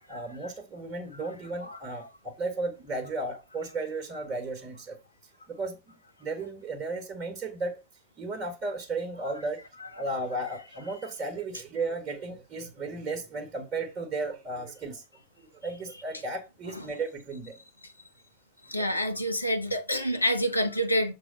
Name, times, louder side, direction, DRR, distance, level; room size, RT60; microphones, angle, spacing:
voice 1, 0.1-5.0 5.5-5.8 6.2-7.8 8.2-9.6 10.0-15.0 15.6-17.5 18.8-18.9, right 3 dB, 30° right, 1.5 m, -34 dB
voice 2, 18.7-21.1, equal, 85° left, 1.0 m, -27 dB
6.6 x 4.1 x 5.0 m
figure-of-eight pair, 90°, 0 cm